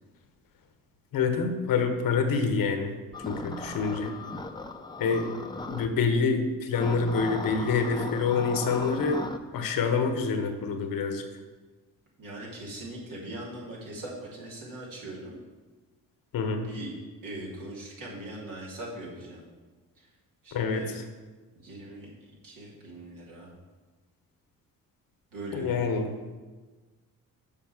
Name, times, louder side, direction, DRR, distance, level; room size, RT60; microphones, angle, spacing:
voice 1, 1.1-2.9 3.2-4.1 5.0-5.3 5.6-9.2 9.5-11.2 16.3-16.7 20.5-21.0 25.5-26.1, left 5 dB, 75° left, 7 dB, 1.2 m, -27 dB
sound 1, 3.1-5.9 6.7-9.4, left 2 dB, 15° left, 0.7 m, -37 dB
voice 2, 12.2-15.4 16.6-16.9 17.2-19.4 20.0-20.1 20.4-20.9 21.6-22.1 22.4-23.5 25.3-25.8, right 1 dB, 70° right, -4 dB, 3.0 m, -40 dB
7.1 x 5.2 x 7.2 m, 1.3 s
cardioid pair, 75°, 34 cm